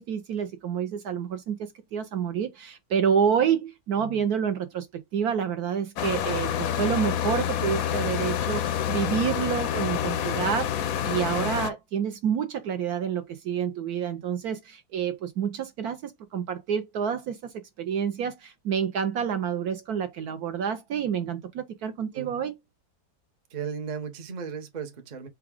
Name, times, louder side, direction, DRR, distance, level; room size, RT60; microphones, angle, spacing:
voice 1, 0.0-22.5, right 7 dB, 65° right, 1.0 m, -28 dB
sound 1, 6.0-11.7, left 9 dB, 70° left, 0.8 m, -28 dB
voice 2, 23.5-25.3, right 6 dB, 50° right, 0.5 m, -36 dB
4.8 x 2.3 x 4.7 m
omnidirectional pair, 2.1 m